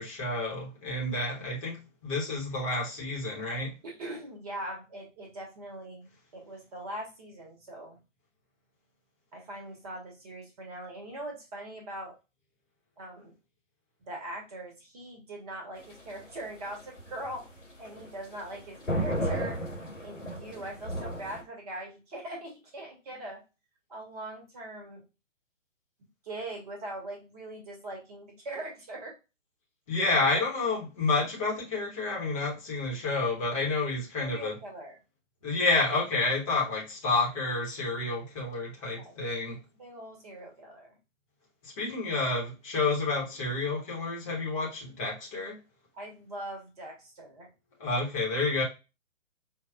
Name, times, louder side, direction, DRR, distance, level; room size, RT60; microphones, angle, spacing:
voice 1, 0.0-3.7 29.9-34.6 35.4-39.6 41.6-45.6 47.8-48.6, left 3 dB, 25° left, 1.1 m, -29 dB
voice 2, 3.8-8.0 9.3-12.1 13.0-13.3 14.0-17.4 17.8-19.6 20.0-23.4 23.9-25.0 26.2-29.1 34.1-35.0 39.0-39.5 39.8-41.0 45.9-47.5, right 1 dB, 30° right, 1.2 m, -41 dB
sound 1, 15.8-21.4, equal, 85° left, 1.7 m, -34 dB
5.0 x 2.4 x 2.3 m
figure-of-eight pair, 130°, 38 cm